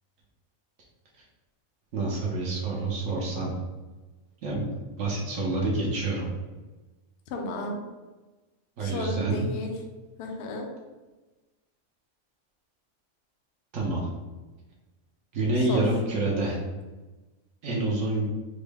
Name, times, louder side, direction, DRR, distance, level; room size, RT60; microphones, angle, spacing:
voice 1, 1.9-3.5 4.4-6.3 8.8-9.4 13.7-14.1 15.3-16.6 17.6-18.2, right 2 dB, 75° right, -3 dB, 1.0 m, -27 dB
voice 2, 7.3-7.8 8.8-9.7 10.2-10.7 15.7-15.8, left 2 dB, 60° left, 2 dB, 0.6 m, -33 dB
3.7 x 2.1 x 3.4 m, 1.2 s
omnidirectional pair, 1.5 m